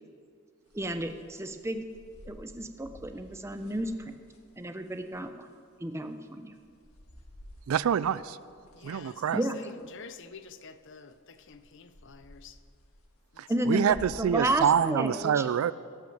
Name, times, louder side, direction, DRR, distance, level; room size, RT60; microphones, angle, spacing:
sound 1, 0.7-5.4 5.8-5.9 6.0-8.0 8.3-9.5 9.8-10.4 10.7-15.0, left 1 dB, 80° left, 1.7 m, -52 dB
voice 1, 0.7-1.8 2.3-4.1 4.6-5.5 5.8-6.5 9.3-9.6 13.5-15.5, right 1 dB, 10° right, 7 dB, 0.6 m, -32 dB
voice 2, 7.7-8.4 8.8-9.4 13.4-15.7, right 8 dB, 70° right, 18 dB, 0.3 m, -26 dB
voice 3, 8.7-12.6 13.3-13.8, left 6 dB, 55° left, 11 dB, 0.6 m, -49 dB
17.5 x 6.2 x 7.1 m, 2.1 s
head